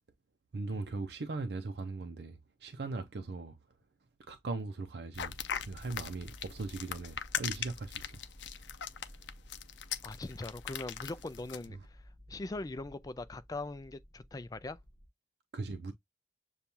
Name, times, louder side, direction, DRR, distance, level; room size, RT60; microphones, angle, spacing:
voice 1, 0.5-3.6 4.3-5.3 5.7-8.2 15.5-15.9, right 3 dB, 70° right, 0.5 m, -39 dB
sound 1, 5.1-11.6, left 9 dB, 85° left, 0.5 m, -39 dB
sound 2, 5.1-15.1, equal, 20° right, 1.0 m, -53 dB
voice 2, 10.0-12.0 12.3-14.8, left 2 dB, 20° left, 0.3 m, -41 dB
6.9 x 2.3 x 2.9 m
head